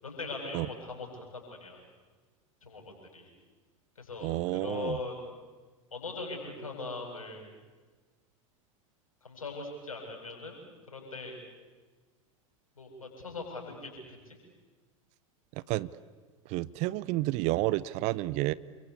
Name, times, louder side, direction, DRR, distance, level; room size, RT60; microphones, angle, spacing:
voice 1, 0.0-1.8 2.6-3.3 4.0-5.2 5.9-7.4 9.2-10.6 10.9-11.4 12.8-14.4, left 3 dB, 75° left, 1 dB, 7.7 m, -40 dB
voice 2, 4.2-5.0 15.7-15.9 16.5-18.5, right 19 dB, 40° right, 20 dB, 0.7 m, -30 dB
28.5 x 23.5 x 8.3 m, 1.4 s
figure-of-eight pair, 90°, 18 cm